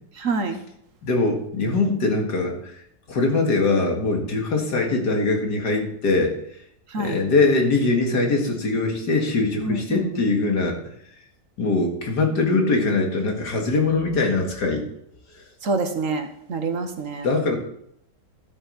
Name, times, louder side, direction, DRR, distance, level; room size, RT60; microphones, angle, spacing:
voice 1, 0.2-0.6 6.9-7.2 9.6-10.2 15.6-17.3, right 3 dB, 55° right, 7 dB, 1.3 m, -26 dB
voice 2, 1.0-2.8 3.1-6.6 7.0-10.8 11.6-14.8 15.3-15.4 17.2-17.6, left 3 dB, 75° left, 2 dB, 2.5 m, -22 dB
12.5 x 8.1 x 4.1 m, 0.73 s
omnidirectional pair, 1.8 m